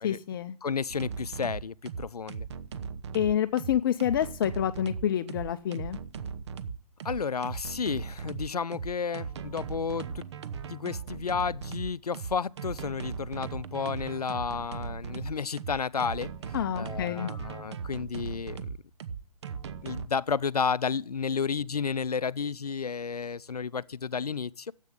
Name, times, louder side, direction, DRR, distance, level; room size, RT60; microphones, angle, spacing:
voice 1, 0.0-0.5 3.1-6.0 16.5-17.3, left 10 dB, 35° left, 0.6 m, -28 dB
voice 2, 0.6-2.5 7.0-10.2 10.7-18.8 19.8-24.7, left 6 dB, 80° left, 0.6 m, -32 dB
sound 1, 0.9-20.1, right 6 dB, 45° right, 0.9 m, -38 dB
14.0 x 8.4 x 7.6 m
figure-of-eight pair, 130°, 19 cm